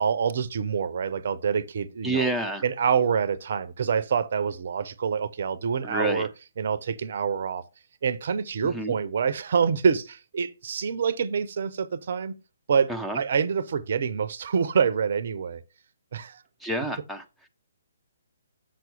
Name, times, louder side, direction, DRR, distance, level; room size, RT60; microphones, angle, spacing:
voice 1, 0.0-2.3 2.6-6.3 6.6-7.7 8.0-12.3 12.7-15.6 16.1-16.4, right 6 dB, 50° right, 0.7 m, -26 dB
voice 2, 2.0-2.6 5.8-6.3 8.6-8.9 12.9-13.2 16.6-17.5, right 1 dB, ahead, 0.8 m, -29 dB
7.5 x 6.0 x 3.3 m
figure-of-eight pair, 130°, 0 cm